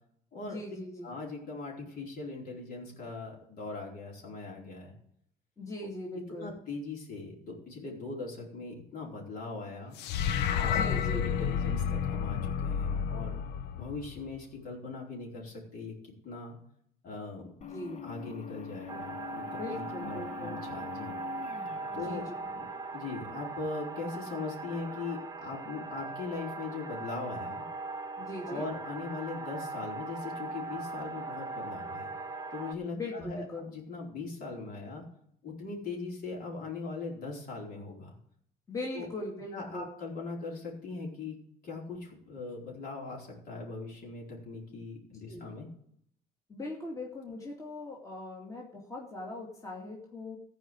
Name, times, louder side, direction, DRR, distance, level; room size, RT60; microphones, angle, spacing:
voice 1, 0.4-1.1 5.6-6.5 10.7-11.3 17.7-18.0 19.5-20.6 22.0-22.3 28.2-28.7 32.9-33.7 38.7-39.9 45.3-45.5 46.5-50.4, left 2 dB, 20° left, -2 dB, 2.4 m, -40 dB
voice 2, 1.0-4.9 6.3-10.0 10.5-10.8 11.1-13.4 13.7-16.6 17.0-17.5 18.0-21.1 21.9-22.2 22.5-22.7 22.9-27.6 28.5-32.2 32.5-35.0 35.4-38.2 38.9-39.1 39.5-41.4 41.6-45.7, left 3 dB, 60° left, -2 dB, 4.5 m, -40 dB
sound 1, 10.0-14.4, left 8 dB, 80° left, 0.7 m, -30 dB
sound 2, 17.6-24.0, left 8 dB, 40° left, 1.1 m, -45 dB
sound 3, 18.9-32.7, right 3 dB, 20° right, 1.0 m, -40 dB
14.5 x 5.2 x 7.7 m, 0.69 s
cardioid pair, 110°, 17 cm